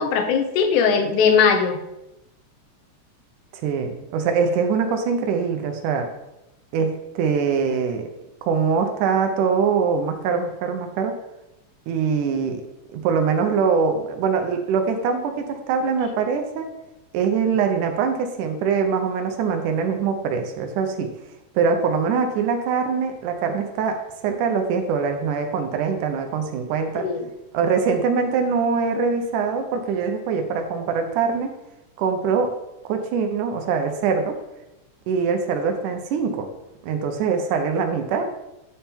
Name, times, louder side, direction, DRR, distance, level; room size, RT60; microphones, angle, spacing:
voice 1, 0.0-1.8 27.0-27.3, left 6 dB, 80° left, 7 dB, 2.2 m, -19 dB
voice 2, 3.5-6.1 6.7-8.1 8.4-11.1 11.9-12.6 12.9-16.7 17.1-21.1 21.6-24.0 24.2-27.1 27.5-31.5 32.0-32.5 32.9-34.4 35.1-36.5 36.8-38.3, right 5 dB, 90° right, 5 dB, 2.3 m, -23 dB
9.9 x 3.6 x 4.4 m, 0.93 s
omnidirectional pair, 3.5 m